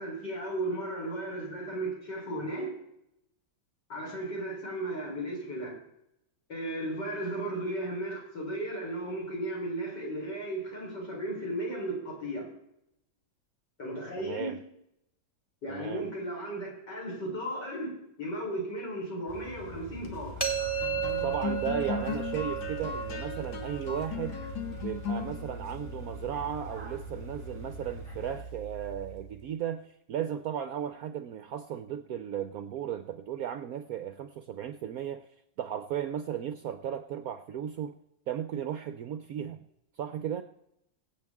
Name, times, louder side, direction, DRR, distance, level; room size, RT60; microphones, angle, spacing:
voice 1, 0.0-2.7 3.9-5.8 6.5-12.5 13.8-14.5 15.6-20.5, right 1 dB, 65° left, 4.5 m, -35 dB
voice 2, 14.2-14.6 15.7-16.1 21.2-24.4 24.7-29.8 30.1-35.3 35.6-37.9 38.3-39.6 40.0-40.4, right 9 dB, 70° right, 0.9 m, -35 dB
sound 1, 19.3-28.4, right 1 dB, 15° right, 1.3 m, -46 dB
sound 2, 19.8-29.4, left 3 dB, 90° left, 2.0 m, -38 dB
sound 3, 20.4-26.2, right 7 dB, 15° left, 1.1 m, -35 dB
23.0 x 8.1 x 3.5 m
omnidirectional pair, 2.0 m